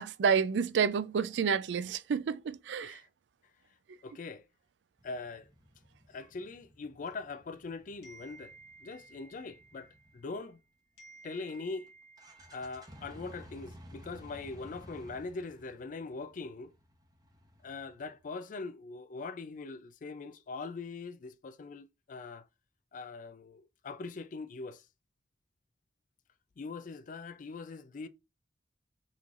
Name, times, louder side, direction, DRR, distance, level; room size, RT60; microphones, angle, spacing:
voice 1, 0.0-3.0, right 6 dB, 75° right, 0.4 m, -29 dB
voice 2, 4.0-4.5 5.0-5.5 6.1-8.5 8.8-10.6 11.2-11.9 12.5-16.7 17.6-22.5 22.9-24.9 26.6-28.1, left 3 dB, 45° left, 0.4 m, -42 dB
sound 1, 5.0-10.5 11.5-11.6 11.9-12.0 12.2-18.3, equal, 20° right, 0.9 m, -54 dB
sound 2, 8.0-10.6 11.0-13.5, right 3 dB, 65° left, 1.4 m, -56 dB
5.6 x 3.2 x 2.5 m
head